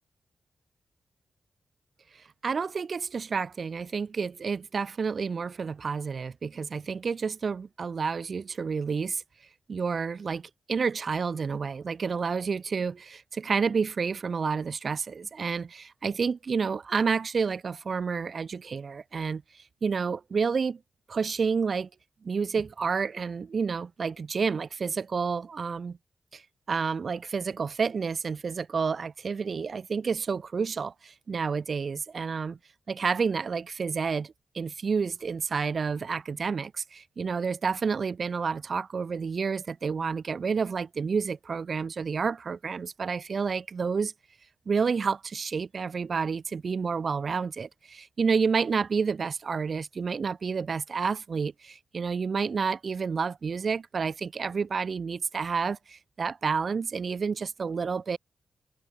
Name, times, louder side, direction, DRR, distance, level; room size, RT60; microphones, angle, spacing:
voice 1, 2.4-9.2 9.7-20.8 21.1-21.9 22.2-26.0 26.3-26.4 26.7-32.6 32.9-44.1 44.7-58.2, right 5 dB, 60° right, 1.2 m, -30 dB
cardioid pair, 70°, 0 cm